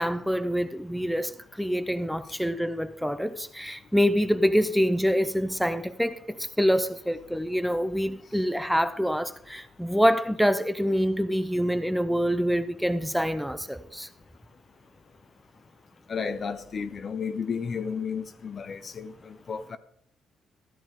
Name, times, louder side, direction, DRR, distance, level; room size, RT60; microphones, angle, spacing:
voice 1, 0.0-14.1, equal, ahead, 0.6 m, -26 dB
voice 2, 16.1-19.8, left 6 dB, 45° left, 0.9 m, -33 dB
13.5 x 10.0 x 3.7 m
cardioid pair, 90°, 0 cm